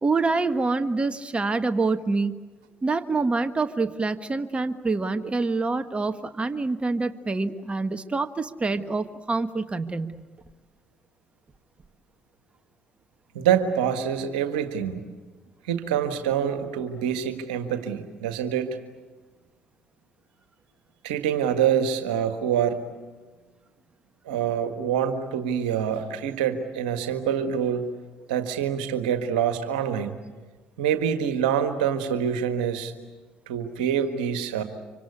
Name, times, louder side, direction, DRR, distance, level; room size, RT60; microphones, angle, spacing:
voice 1, 0.0-2.4 2.8-10.2, right 3 dB, 25° right, 9 dB, 1.4 m, -26 dB
voice 2, 13.3-15.0 15.6-18.8 21.0-22.8 24.3-27.9 28.3-30.1 30.8-32.9 33.5-34.6, right 8 dB, 85° right, 8 dB, 1.6 m, -26 dB
26.0 x 25.0 x 8.5 m, 1.3 s
hypercardioid pair, 55°, 4 cm